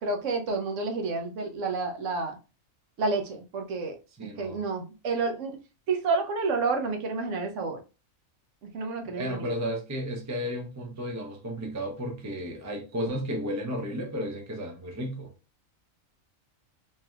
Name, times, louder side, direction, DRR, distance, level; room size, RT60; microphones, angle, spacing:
voice 1, 0.0-2.4 3.0-4.0 4.4-5.5 5.9-7.8 8.7-9.5, right 3 dB, 70° right, 1.0 m, -29 dB
voice 2, 4.2-4.6 9.0-15.3, equal, 25° right, 0.3 m, -33 dB
3.2 x 2.7 x 2.2 m
omnidirectional pair, 1.4 m